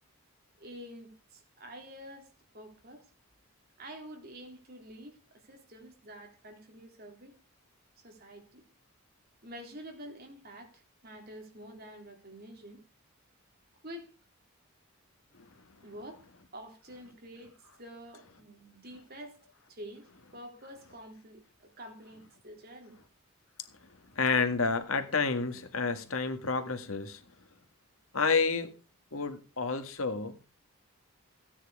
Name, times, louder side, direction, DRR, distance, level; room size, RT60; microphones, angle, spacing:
voice 1, 0.6-2.3 2.5-3.1 3.8-7.3 8.0-8.6 9.4-12.8 13.8-14.1 15.8-16.2 16.5-19.4 19.7-23.0, equal, 45° right, 3.7 m, -48 dB
voice 2, 24.2-27.2 28.1-28.7 29.1-30.4, left 4 dB, 70° left, 1.9 m, -29 dB
16.0 x 9.8 x 5.0 m
head